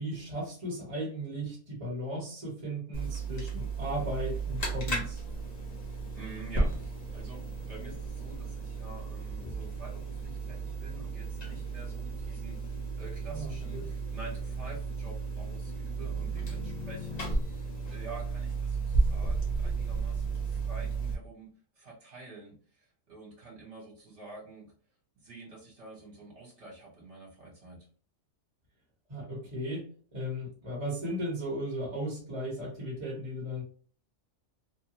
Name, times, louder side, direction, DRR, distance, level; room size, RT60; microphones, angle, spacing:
voice 1, 0.0-5.2 13.3-13.8 29.1-29.8 30.1-33.6, equal, 25° right, -3 dB, 1.1 m, -36 dB
sound 1, 2.9-21.1, right 3 dB, 35° left, 0.9 m, -34 dB
voice 2, 6.1-21.5 21.7-24.7 25.2-27.9, right 3 dB, 55° right, -4 dB, 1.4 m, -48 dB
3.2 x 2.2 x 2.9 m, 0.42 s
omnidirectional pair, 1.4 m